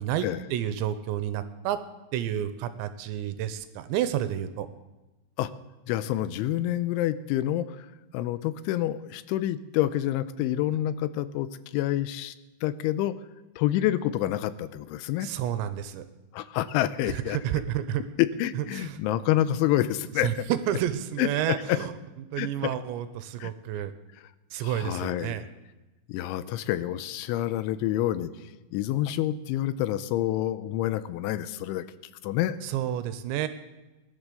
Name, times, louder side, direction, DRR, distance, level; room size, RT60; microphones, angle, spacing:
voice 1, 0.0-1.8 2.1-4.7 15.2-16.0 17.1-18.0 18.6-19.0 20.2-21.9 22.3-23.9 24.5-25.4 32.6-33.5, right 11 dB, 80° right, 11 dB, 2.9 m, -30 dB
voice 2, 5.9-7.9 8.1-12.3 12.6-13.1 13.6-15.3 16.3-17.4 18.2-20.3 21.2-21.8 22.4-22.8 23.4-23.5 24.6-25.4 26.1-28.3 28.7-31.8 32.2-32.6, left 13 dB, 85° left, 14 dB, 3.1 m, -28 dB
19.5 x 11.0 x 6.8 m, 1.1 s
omnidirectional pair, 5.4 m